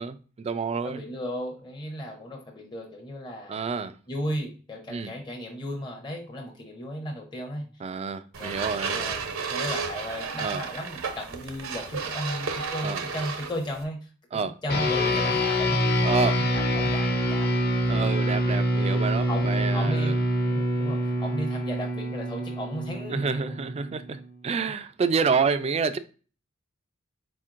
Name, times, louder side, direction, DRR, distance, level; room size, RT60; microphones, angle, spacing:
voice 1, 0.0-1.0 3.5-3.9 4.9-5.1 7.8-9.0 10.4-10.6 12.8-13.0 14.3-14.6 16.0-16.4 17.9-20.2 23.1-26.0, right 5 dB, 30° right, 0.3 m, -28 dB
voice 2, 0.8-3.7 4.1-7.7 8.4-8.5 8.9-14.1 14.4-17.5 19.3-20.1 20.4-23.6, equal, 20° left, 0.7 m, -35 dB
sound 1, 8.3-13.8, right 5 dB, 75° right, 0.7 m, -33 dB
sound 2, 14.7-24.3, equal, 50° left, 1.0 m, -26 dB
4.4 x 4.2 x 2.5 m
head